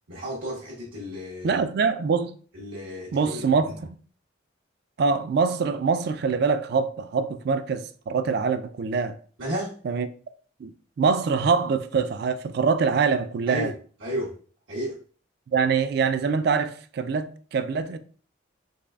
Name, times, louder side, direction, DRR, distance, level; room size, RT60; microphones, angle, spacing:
voice 1, 0.1-1.6 2.5-3.8 9.4-9.7 13.5-13.7 14.0-14.3 14.7-15.0, equal, 80° right, 1.1 m, -33 dB
voice 2, 1.4-2.4 3.1-3.7 5.0-9.2 9.8-10.1 10.6-10.7 11.0-13.7 15.5-18.0, right 5 dB, 55° right, 0.3 m, -24 dB
4.0 x 3.2 x 2.3 m
head